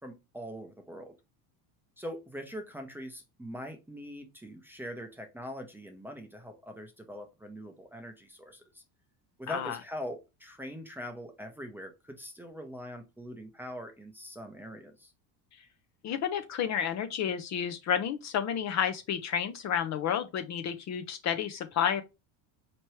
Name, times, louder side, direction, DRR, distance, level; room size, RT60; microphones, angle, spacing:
voice 1, 0.0-1.1 2.0-8.8 9.4-15.1, equal, 5° right, 0.6 m, -42 dB
voice 2, 16.0-22.0, left 8 dB, 40° left, 0.6 m, -31 dB
4.4 x 3.0 x 3.0 m
supercardioid pair, 120°, 44 cm